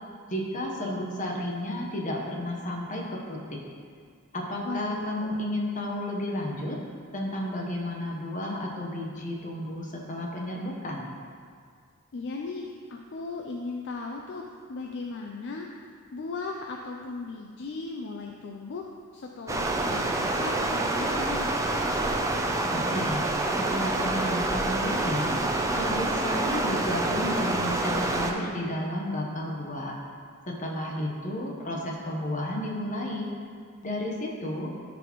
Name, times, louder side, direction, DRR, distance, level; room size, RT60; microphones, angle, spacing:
voice 1, 0.3-3.6 4.3-6.8 7.1-11.0 22.7-23.2 23.6-25.4 25.8-30.0 30.5-33.3 33.8-34.7, left 1 dB, 35° left, -1 dB, 1.0 m, -32 dB
voice 2, 4.6-5.4 12.1-18.8 19.1-21.5, left 3 dB, 55° left, 1 dB, 0.4 m, -37 dB
Stream, 19.5-28.3, right 2 dB, 15° right, 0.4 m, -27 dB
12.0 x 4.1 x 3.0 m, 2.1 s
head